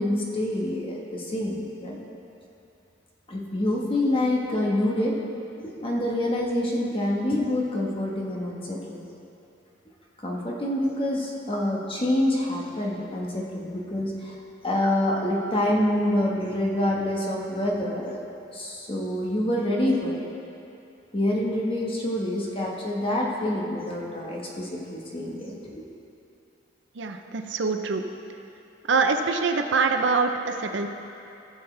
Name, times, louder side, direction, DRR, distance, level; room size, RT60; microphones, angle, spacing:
voice 1, 0.0-2.0 3.3-5.1 5.6-9.0 10.2-14.3 14.6-18.2 18.5-20.3 21.1-25.8, left 1 dB, 30° left, -3 dB, 1.3 m, -26 dB
voice 2, 27.0-28.1 28.9-30.9, right 4 dB, 70° right, 6 dB, 0.6 m, -24 dB
16.0 x 7.1 x 3.4 m, 2.8 s
head